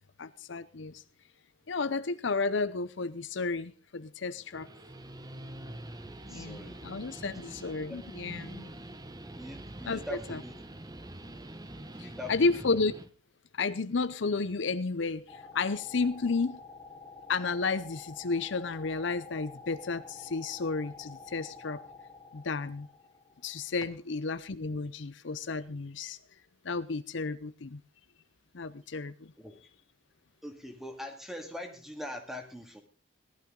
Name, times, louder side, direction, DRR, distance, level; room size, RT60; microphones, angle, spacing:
voice 1, 0.2-1.0 1.7-4.7 6.3-8.7 9.8-10.4 12.0-12.9 13.5-16.6 17.3-21.8 22.3-22.9 23.4-26.2 26.6-27.8 28.5-29.3, left 4 dB, 65° left, 14 dB, 0.6 m, -32 dB
Guitar, 4.4-13.1, right 1 dB, 20° right, 0.8 m, -45 dB
voice 2, 6.3-6.8 7.4-7.6 7.9-8.0 9.4-10.6 11.9-12.3 29.4-29.6 30.4-32.8, left 1 dB, ahead, 4 dB, 2.1 m, -42 dB
sound 1, 15.3-23.9, left 4 dB, 20° left, 2.7 m, -49 dB
18.0 x 12.0 x 3.8 m, 0.35 s
head